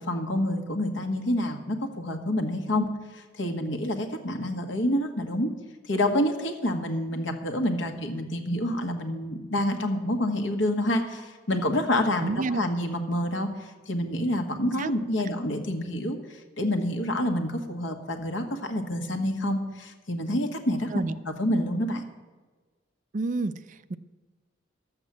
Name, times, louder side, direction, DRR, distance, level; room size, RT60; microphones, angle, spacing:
voice 1, 0.0-2.9 3.3-5.5 5.9-13.5 13.9-22.0, left 1 dB, 75° left, 5 dB, 1.5 m, -28 dB
voice 2, 12.2-12.6 14.8-14.9 20.9-21.2 23.1-24.0, right 3 dB, 40° right, 14 dB, 0.4 m, -29 dB
12.0 x 8.0 x 7.4 m, 1.3 s
head